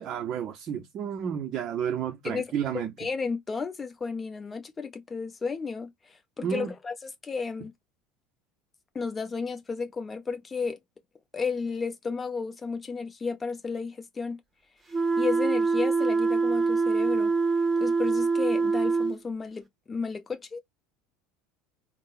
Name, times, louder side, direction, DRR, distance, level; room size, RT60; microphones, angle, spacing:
voice 1, 0.0-2.9 6.4-6.7, right 8 dB, 45° right, 0.5 m, -31 dB
voice 2, 3.0-7.7 8.9-10.8 11.3-14.4 15.2-17.3 17.8-20.6, left 4 dB, 25° left, 0.7 m, -33 dB
sound 1, 14.9-19.2, right 4 dB, 20° right, 0.8 m, -24 dB
3.4 x 2.0 x 2.4 m
figure-of-eight pair, 70°, 0 cm